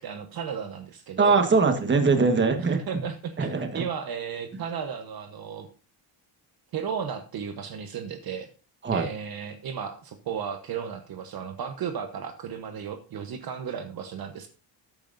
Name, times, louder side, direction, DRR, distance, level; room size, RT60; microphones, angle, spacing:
voice 1, 0.0-1.3 2.6-5.7 6.7-8.5 8.9-14.5, right 7 dB, 50° right, 7 dB, 1.1 m, -34 dB
voice 2, 1.2-3.0 3.4-3.8 4.5-4.6 8.8-9.1, right 4 dB, 25° right, 6 dB, 1.5 m, -22 dB
13.5 x 9.0 x 2.6 m, 0.34 s
cardioid pair, 140°, 46 cm